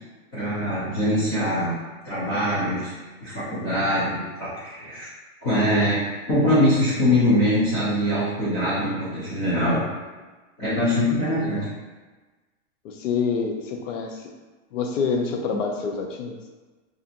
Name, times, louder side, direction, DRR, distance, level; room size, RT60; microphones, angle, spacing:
voice 1, 0.3-1.7 2.0-2.9 3.2-5.1 5.4-6.0 6.3-9.8 10.6-11.7, equal, 20° left, -12 dB, 0.4 m, -23 dB
voice 2, 11.2-11.7 12.8-14.3 14.7-16.4, left 5 dB, 65° left, 2 dB, 0.6 m, -27 dB
2.7 x 2.5 x 2.5 m, 1.3 s
supercardioid pair, 165°, 40 cm